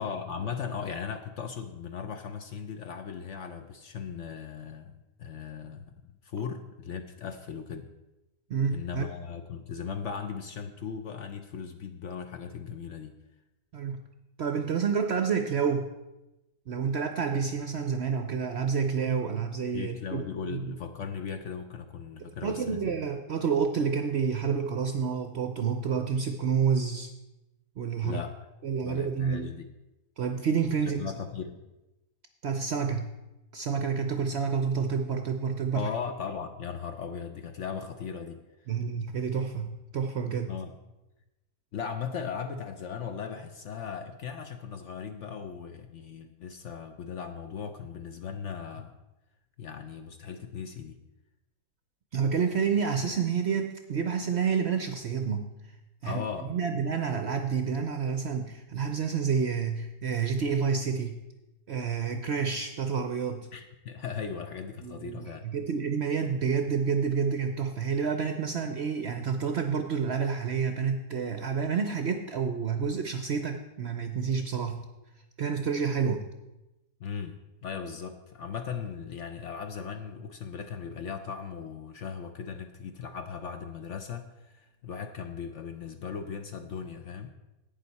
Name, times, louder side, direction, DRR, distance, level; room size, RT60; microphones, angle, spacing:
voice 1, 0.0-7.9 8.7-13.2 19.7-22.9 28.0-28.3 28.8-29.7 30.8-31.6 35.7-38.4 40.5-40.7 41.7-48.9 49.6-51.0 56.0-56.5 63.5-65.4 77.0-87.3, left 6 dB, 60° left, 7 dB, 0.8 m, -38 dB
voice 2, 8.5-9.0 13.7-14.0 14.4-15.9 16.7-20.8 22.4-27.1 27.8-28.2 28.6-29.5 30.2-31.0 32.4-33.1 33.5-35.9 38.7-40.5 52.1-55.5 56.0-56.2 56.5-61.2 61.7-63.5 64.8-74.8 75.4-76.3, right 6 dB, 60° right, 6 dB, 0.7 m, -29 dB
11.5 x 8.9 x 4.1 m, 0.98 s
omnidirectional pair, 1.7 m